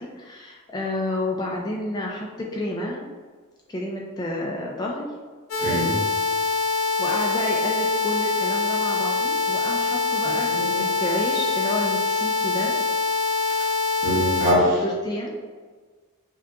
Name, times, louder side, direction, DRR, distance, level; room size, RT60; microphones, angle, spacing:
voice 1, 0.0-3.1 3.7-5.1 7.0-12.8 14.1-14.2 14.8-15.3, left 1 dB, 20° left, -2 dB, 0.4 m, -30 dB
sound 1, 5.5-14.5, left 4 dB, 80° left, 0.8 m, -24 dB
voice 2, 5.6-6.0 10.5-10.8 14.0-14.8, equal, 35° right, -7 dB, 1.5 m, -23 dB
5.6 x 2.8 x 2.4 m, 1.5 s
head